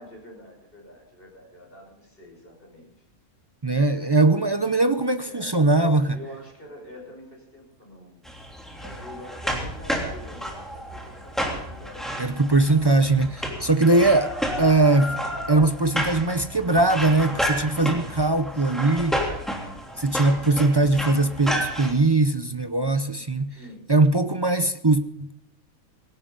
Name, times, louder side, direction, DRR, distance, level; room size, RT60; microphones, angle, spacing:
voice 1, 0.0-3.0 4.0-4.1 5.2-5.5 5.8-12.3 23.5-23.8, left 1 dB, 40° left, 6.2 m, -45 dB
voice 2, 3.6-6.2 12.2-15.2 15.5-19.2 20.0-23.6 23.9-25.3, right 2 dB, 35° right, 0.4 m, -21 dB
sound 1, 8.2-21.9, equal, ahead, 3.0 m, -31 dB
18.5 x 17.5 x 3.9 m
omnidirectional pair, 1.5 m